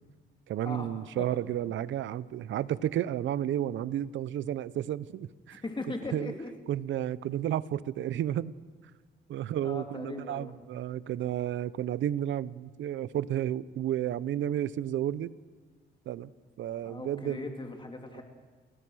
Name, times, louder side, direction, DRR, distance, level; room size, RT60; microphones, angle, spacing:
voice 1, 0.5-5.6 6.1-6.3 6.7-8.5 9.3-15.3 16.1-16.3 16.6-17.4 18.1-18.2, right 11 dB, 70° right, 18 dB, 0.8 m, -32 dB
voice 2, 5.6-6.5 9.6-10.5 16.8-18.2, left 3 dB, 25° left, 3 dB, 2.5 m, -39 dB
28.5 x 19.0 x 6.3 m, 1.3 s
cardioid pair, 90°, 20 cm